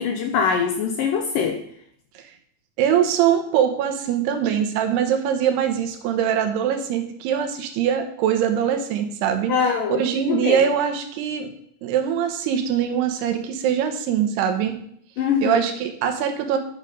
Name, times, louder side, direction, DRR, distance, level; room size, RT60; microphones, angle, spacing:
voice 1, 0.0-1.6 9.5-10.7 15.2-15.6, left 6 dB, 75° left, 4 dB, 2.1 m, -23 dB
voice 2, 2.8-9.5 10.0-11.5 11.8-14.8 15.4-16.6, right 9 dB, 80° right, 6 dB, 3.0 m, -22 dB
8.9 x 7.8 x 5.1 m, 0.67 s
omnidirectional pair, 4.7 m